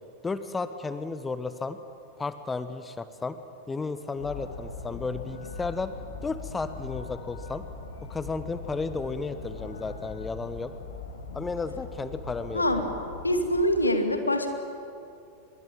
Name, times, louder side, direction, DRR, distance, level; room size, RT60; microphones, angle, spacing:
voice 1, 0.2-1.8 2.2-3.4 3.7-5.9 6.2-7.6 8.1-10.7 11.3-12.6, left 4 dB, 15° left, 11 dB, 1.2 m, -33 dB
sound 1, 4.2-13.8, left 4 dB, 65° left, 2.7 m, -41 dB
voice 2, 12.5-12.9 13.2-14.5, equal, 80° left, 6 dB, 2.4 m, -24 dB
25.0 x 22.0 x 8.9 m, 2.5 s
figure-of-eight pair, 90°, 0 cm